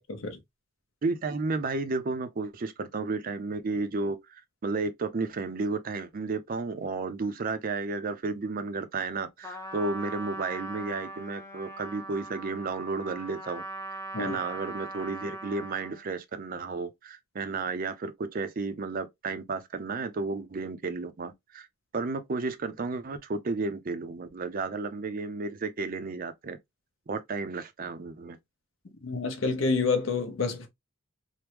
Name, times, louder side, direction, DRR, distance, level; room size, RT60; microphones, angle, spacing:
voice 1, 0.1-0.4 14.1-14.4 29.0-30.7, left 4 dB, 65° left, 0.8 m, -28 dB
voice 2, 1.0-13.6 13.9-21.7 21.9-26.6 27.1-28.4, right 3 dB, 40° right, 0.5 m, -32 dB
Trumpet, 9.4-16.0, right 2 dB, 15° left, 0.5 m, -40 dB
3.4 x 2.1 x 2.9 m
head